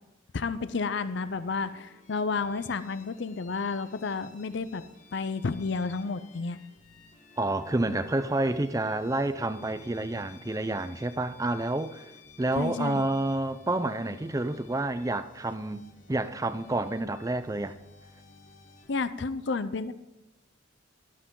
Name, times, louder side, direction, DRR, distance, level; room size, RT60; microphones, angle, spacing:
voice 1, 0.3-4.8 5.1-6.6 12.6-13.1 18.9-19.9, left 4 dB, 60° left, 0.5 m, -31 dB
sound 1, 0.6-19.1, left 4 dB, 40° left, 1.2 m, -55 dB
voice 2, 7.4-12.1 12.4-15.8 16.1-17.8, right 2 dB, 15° right, 0.5 m, -29 dB
12.5 x 12.0 x 3.8 m
head